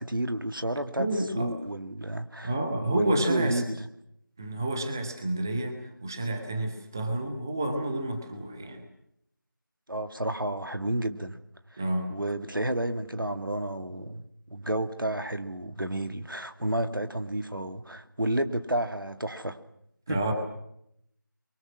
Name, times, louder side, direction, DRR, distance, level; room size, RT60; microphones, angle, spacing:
voice 1, 0.0-1.1 1.3-2.5 2.9-3.9 9.9-11.4 11.7-11.8 12.1-19.6 20.1-20.2, right 1 dB, 85° right, 9 dB, 2.4 m, -31 dB
voice 2, 1.0-1.5 2.4-3.6 4.4-8.8 11.8-12.2 20.1-20.3, right 1 dB, 10° right, 4 dB, 1.0 m, -29 dB
27.5 x 23.5 x 6.2 m, 0.74 s
figure-of-eight pair, 170°, 11 cm